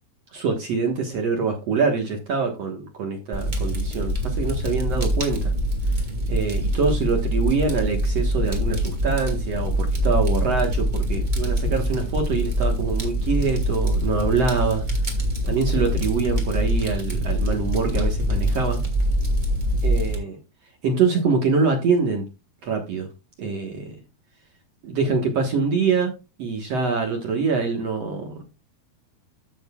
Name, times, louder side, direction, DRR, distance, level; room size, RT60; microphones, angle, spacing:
voice 1, 0.3-5.5 6.3-14.8 15.4-18.8 19.8-20.4 20.8-22.2 22.6-23.1 23.4-24.0 24.8-26.1 26.4-28.4, right 4 dB, 55° right, 2 dB, 1.9 m, -24 dB
Fire, 3.3-20.2, equal, 20° right, 1.3 m, -24 dB
14.0 x 6.4 x 2.3 m, 0.26 s
omnidirectional pair, 4.5 m